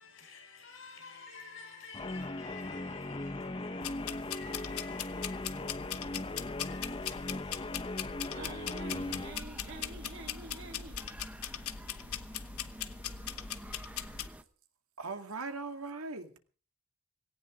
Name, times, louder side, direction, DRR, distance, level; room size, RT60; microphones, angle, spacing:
voice 1, 0.0-8.4 8.6-9.3, left 5 dB, 60° left, 6.2 m, -52 dB
Guitar, 1.9-9.4, left 2 dB, 25° left, 0.7 m, -39 dB
sound 1, 3.8-14.3, left 9 dB, 85° left, 1.1 m, -40 dB
voice 2, 8.3-11.1, right 3 dB, 60° right, 3.6 m, -47 dB
sound 2, 8.9-14.4, right 1 dB, 5° right, 1.0 m, -49 dB
voice 3, 13.7-14.2 15.0-16.4, right 3 dB, 85° right, 2.3 m, -41 dB
18.5 x 17.5 x 3.8 m
head